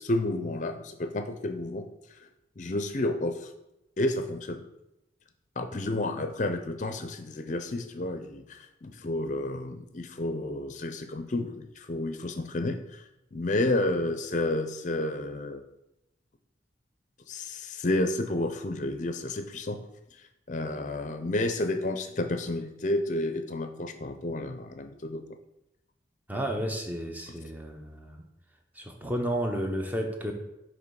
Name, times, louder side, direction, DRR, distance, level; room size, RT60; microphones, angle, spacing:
voice 1, 0.0-1.9 2.6-3.5 4.0-4.6 5.6-13.0 13.3-15.6 17.3-19.8 20.5-25.2, left 2 dB, 40° left, 7 dB, 0.5 m, -31 dB
voice 2, 26.3-28.2 28.8-30.3, equal, 10° right, 3 dB, 0.6 m, -32 dB
6.4 x 3.1 x 4.7 m, 0.89 s
head